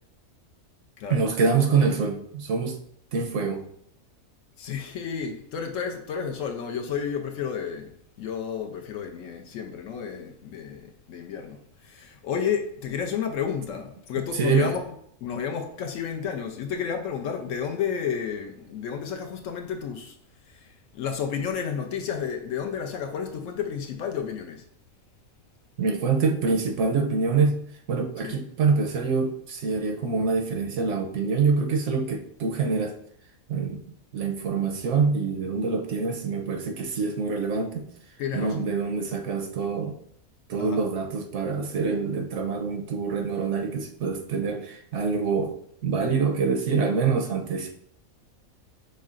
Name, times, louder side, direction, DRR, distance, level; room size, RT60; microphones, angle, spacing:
voice 1, 1.1-2.8 3.1-3.6 14.3-14.7 25.8-27.6 27.9-32.9 33.5-33.8 34.1-37.9 38.3-39.9 40.5-45.5 45.8-47.7, right 5 dB, 70° right, 0.8 m, -25 dB
voice 2, 4.6-7.9 8.2-14.8 15.2-20.2 20.5-24.6 28.2-28.4 38.2-38.7 40.6-40.8, left 7 dB, 70° left, 0.9 m, -31 dB
5.6 x 3.1 x 2.4 m
omnidirectional pair, 1.5 m